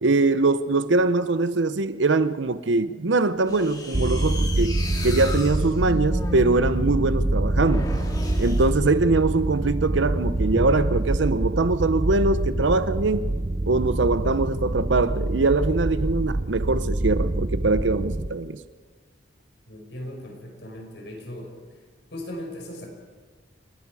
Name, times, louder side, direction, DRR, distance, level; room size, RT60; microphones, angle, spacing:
voice 1, 0.0-4.7 5.0-7.9 8.4-13.3 13.7-18.6, right 3 dB, 80° right, 0.8 m, -22 dB
sound 1, 3.4-9.4 10.3-10.9, left 1 dB, 20° left, 2.5 m, -34 dB
sound 2, 3.9-18.3, right 2 dB, 30° right, 0.6 m, -26 dB
voice 2, 19.7-21.6 22.1-22.9, left 1 dB, 70° left, 5.0 m, -38 dB
29.5 x 19.5 x 4.8 m
head